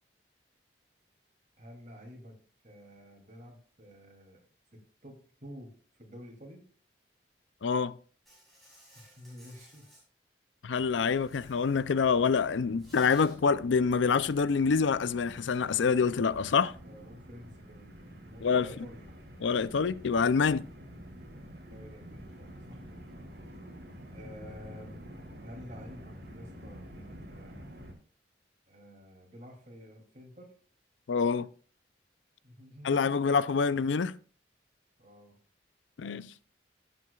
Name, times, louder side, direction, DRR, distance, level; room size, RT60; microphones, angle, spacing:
voice 1, 1.6-6.6 8.9-9.9 16.8-19.1 21.4-22.8 24.1-25.1 25.4-27.7 28.7-30.5 32.4-33.5 35.0-35.4, equal, 40° right, 2.8 m, -50 dB
voice 2, 7.6-7.9 10.6-16.7 18.4-18.7 19.4-20.6 31.1-31.5 32.8-34.1 36.0-36.3, left 5 dB, 85° left, 0.5 m, -26 dB
Insect, 8.3-10.0 11.1-11.9 12.3-13.4, equal, ahead, 5.4 m, -58 dB
sound 1, 10.7-27.9, equal, 60° right, 2.4 m, -49 dB
17.0 x 7.7 x 2.4 m
head